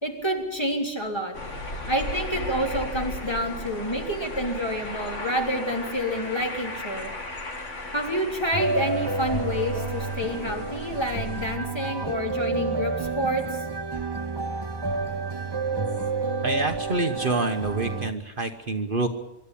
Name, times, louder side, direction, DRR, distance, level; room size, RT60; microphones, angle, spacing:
voice 1, 0.0-1.4 1.9-7.1 7.9-13.6, equal, 20° left, 1 dB, 3.3 m, -28 dB
sound 1, 1.3-11.6, left 2 dB, 80° left, 2.8 m, -36 dB
Calming Background Music Guitar Loop, 8.5-18.1, right 3 dB, 25° right, 0.7 m, -29 dB
voice 2, 16.4-19.1, right 3 dB, 45° right, 6 dB, 1.3 m, -27 dB
25.5 x 12.0 x 9.9 m, 0.99 s
omnidirectional pair, 1.2 m